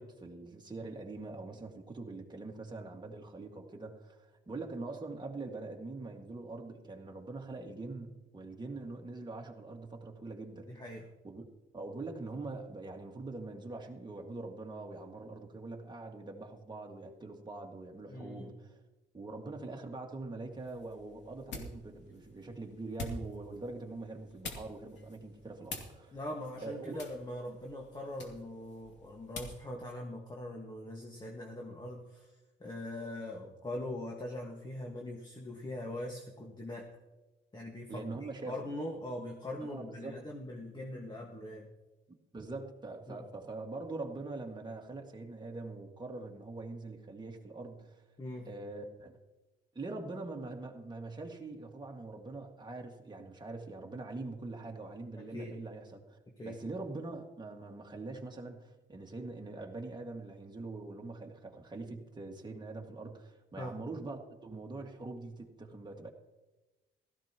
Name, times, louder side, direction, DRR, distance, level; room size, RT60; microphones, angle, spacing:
voice 1, 0.0-10.7 11.2-11.5 11.7-18.8 19.1-26.2 26.6-27.0 37.9-38.7 39.7-40.1 42.3-48.0 48.4-49.2 49.7-56.2 56.4-66.1, right 3 dB, 20° right, 1 dB, 1.9 m, -43 dB
voice 2, 10.7-11.0 18.1-18.5 26.1-36.9 37.5-41.7 43.1-43.2 48.2-48.5 55.2-55.5 56.4-56.6 63.6-63.8, left 1 dB, 20° left, 0 dB, 1.7 m, -42 dB
sound 1, 20.5-29.7, left 2 dB, 65° left, 2.5 m, -48 dB
16.5 x 14.0 x 3.0 m, 1.1 s
cardioid pair, 90°, 20 cm